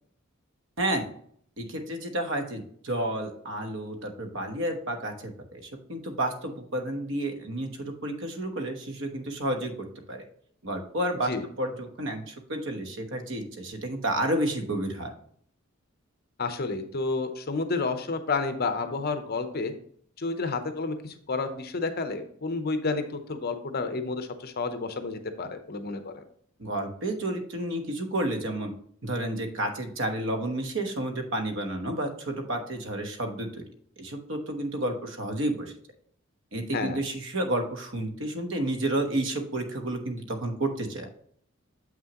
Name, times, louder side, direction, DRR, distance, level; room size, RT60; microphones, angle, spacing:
voice 1, 0.8-1.1 1.6-9.7 10.1-10.2 10.6-15.1 26.6-28.7 29.0-33.6 34.0-35.7 36.5-41.1, right 1 dB, 65° right, 5 dB, 1.2 m, -31 dB
voice 2, 16.4-19.7 20.2-26.2 36.7-37.0, left 3 dB, 50° left, 8 dB, 0.7 m, -30 dB
7.4 x 6.0 x 2.9 m, 0.62 s
head